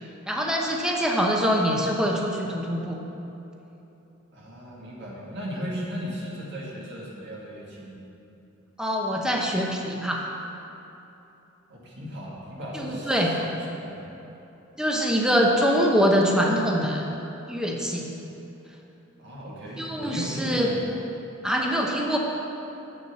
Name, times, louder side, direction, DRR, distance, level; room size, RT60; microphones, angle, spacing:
voice 1, 0.3-3.0 8.8-10.3 12.7-13.3 14.8-17.1 17.5-18.1 19.8-20.7 21.4-22.2, equal, 5° right, -1 dB, 0.9 m, -24 dB
voice 2, 4.3-8.1 11.7-14.1 19.2-20.8, equal, 55° right, -4 dB, 2.0 m, -36 dB
8.0 x 6.9 x 7.3 m, 3.0 s
head